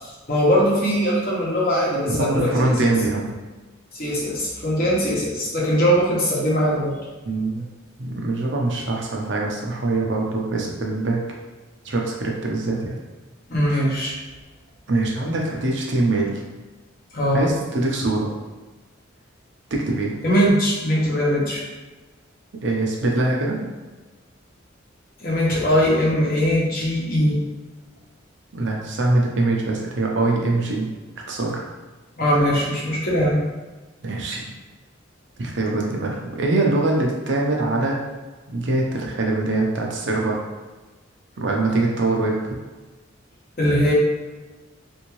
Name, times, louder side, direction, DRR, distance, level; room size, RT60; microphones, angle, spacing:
voice 1, 0.3-2.7 3.9-7.0 13.5-14.1 17.1-17.6 20.2-21.6 25.2-27.4 32.2-33.4 43.6-43.9, equal, 45° left, -5 dB, 1.0 m, -20 dB
voice 2, 2.1-3.3 7.3-7.7 8.0-11.2 11.8-12.9 14.9-16.4 17.3-18.3 19.7-20.1 22.6-23.6 28.5-30.9 31.3-31.6 34.0-34.4 35.4-38.0 38.5-40.4 41.4-42.6, right 2 dB, 60° right, -1 dB, 0.6 m, -23 dB
3.5 x 2.7 x 3.0 m, 1.2 s
head